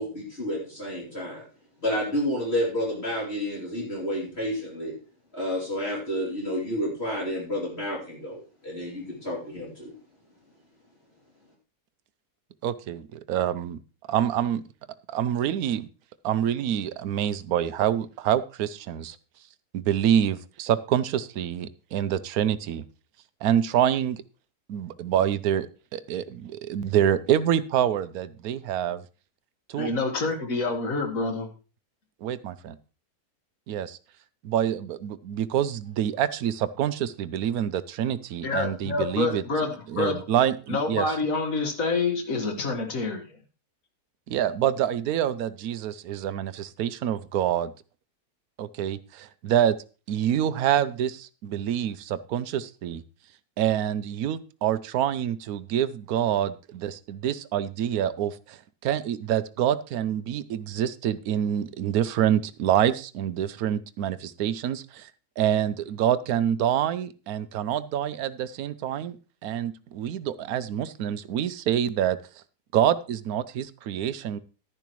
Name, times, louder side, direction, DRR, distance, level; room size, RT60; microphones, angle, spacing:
voice 1, 0.0-1.4 1.8-4.9 5.3-9.9, equal, 40° left, -4 dB, 3.2 m, -30 dB
voice 2, 12.6-13.8 14.1-14.6 15.1-15.9 16.2-19.2 19.7-22.8 23.4-24.2 24.7-29.0 29.7-29.9 32.2-32.7 33.7-34.0 34.4-39.4 39.9-41.1 44.3-47.7 48.6-49.8 50.1-53.0 53.6-65.1 65.4-69.2 69.4-72.2 72.7-74.4, right 10 dB, 70° right, 15 dB, 1.1 m, -26 dB
voice 3, 29.8-31.5 38.4-40.3 40.7-43.3, left 3 dB, 60° left, 5 dB, 2.1 m, -27 dB
11.0 x 10.5 x 3.1 m, 0.35 s
omnidirectional pair, 1.7 m